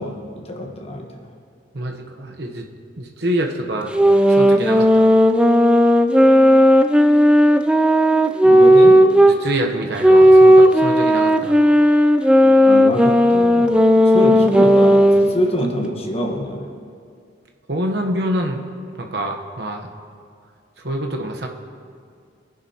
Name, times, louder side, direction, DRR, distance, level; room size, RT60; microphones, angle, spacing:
voice 1, 0.0-1.3 8.4-9.1 12.4-13.8 14.0-16.7, equal, 35° left, 1 dB, 1.3 m, -25 dB
voice 2, 1.7-2.7 3.0-3.9 4.3-5.1 9.3-11.6 17.7-18.6 19.0-19.9 20.8-21.5, right 1 dB, 60° right, 2 dB, 1.0 m, -26 dB
sound 1, 3.9-9.4 10.0-15.4, equal, 5° right, 0.3 m, -13 dB
20.5 x 10.5 x 2.9 m, 2.2 s
head